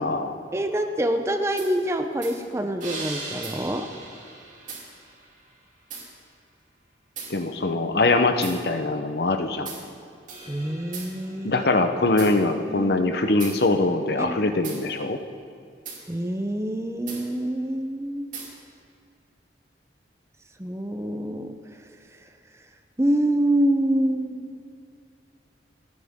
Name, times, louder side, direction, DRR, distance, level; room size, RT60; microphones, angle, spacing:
voice 1, 0.0-0.4 7.3-9.7 11.4-15.2, left 2 dB, 60° left, 7 dB, 0.8 m, -23 dB
voice 2, 0.5-3.9 10.5-11.6 12.1-12.2 12.7-12.9 14.2-14.4 16.1-18.3 20.6-21.6 23.0-24.5, right 1 dB, 15° right, 6 dB, 0.6 m, -26 dB
sound 1, 1.6-1.7 2.2-2.4 2.8-5.3 5.9-6.1 7.2-7.3 8.4-8.6 9.7-9.8 10.3-12.4 13.4-13.6 14.6-14.8 15.9-16.0 17.1-17.2 18.3-18.5, right 4 dB, 45° right, 3.0 m, -38 dB
28.5 x 9.7 x 3.7 m, 2.3 s
head